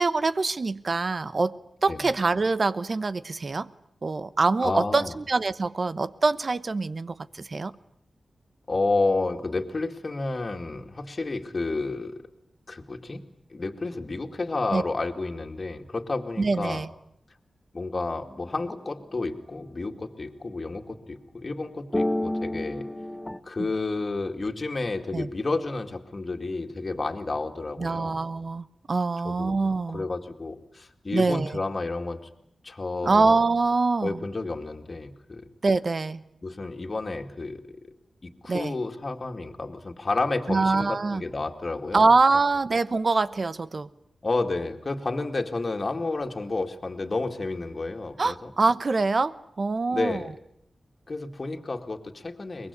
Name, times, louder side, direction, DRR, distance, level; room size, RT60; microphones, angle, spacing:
voice 1, 0.0-1.6 1.8-3.7 4.0-7.8 14.7-14.8 16.4-16.9 25.1-25.3 27.8-30.0 31.1-31.6 33.0-34.2 35.6-36.2 38.5-38.8 40.5-41.2 41.9-43.9 48.2-50.2, right 3 dB, 50° right, 15 dB, 0.9 m, -24 dB
voice 2, 4.6-5.2 8.7-12.2 12.7-13.2 13.5-16.8 17.7-22.9 23.4-28.2 29.2-29.5 29.9-32.2 32.6-33.3 34.0-35.5 36.4-37.8 38.2-42.1 44.2-48.5 49.9-50.3 51.1-52.7, left 3 dB, 45° left, 4 dB, 2.2 m, -31 dB
sound 1, 18.2-18.9 21.9-23.4, left 1 dB, 15° left, 1.1 m, -30 dB
23.5 x 20.5 x 9.7 m, 0.74 s
wide cardioid pair, 75°, 0 cm